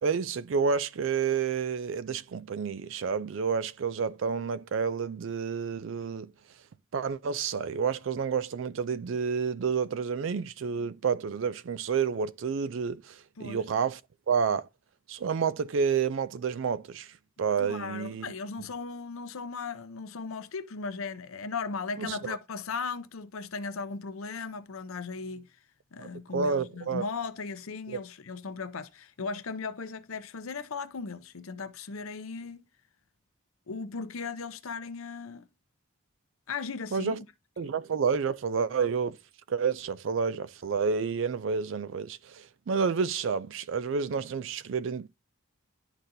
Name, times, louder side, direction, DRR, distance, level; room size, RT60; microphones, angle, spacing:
voice 1, 0.0-6.3 6.9-14.0 14.3-14.7 15.1-17.1 17.4-18.3 18.6-18.7 22.0-22.4 26.0-27.0 27.9-28.0 36.9-37.2 37.6-39.2 39.5-45.1, right 6 dB, 65° right, 0.4 m, -29 dB
voice 2, 17.6-25.5 25.9-32.6 33.7-35.5 36.5-37.2 37.6-37.7, left 4 dB, 85° left, 0.7 m, -37 dB
11.5 x 4.0 x 2.6 m
head